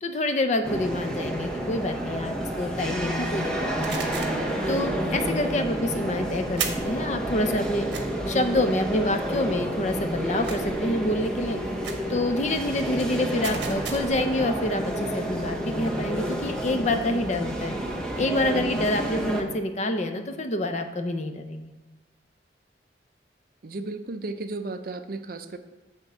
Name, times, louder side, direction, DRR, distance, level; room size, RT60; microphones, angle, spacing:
voice 1, 0.0-4.0 4.7-7.9 8.3-11.6 12.1-17.8 18.2-21.7, left 1 dB, 40° left, 7 dB, 0.6 m, -27 dB
sound 1, 0.6-19.4, right 1 dB, 5° left, 0.9 m, -30 dB
sound 2, 3.8-4.4 6.6-7.0 7.9-8.0 10.4-10.8 11.8-12.1 13.4-14.2, right 6 dB, 75° right, 1.1 m, -34 dB
voice 2, 23.6-25.6, right 3 dB, 55° right, 9 dB, 0.5 m, -34 dB
9.1 x 3.6 x 6.7 m, 1.1 s
head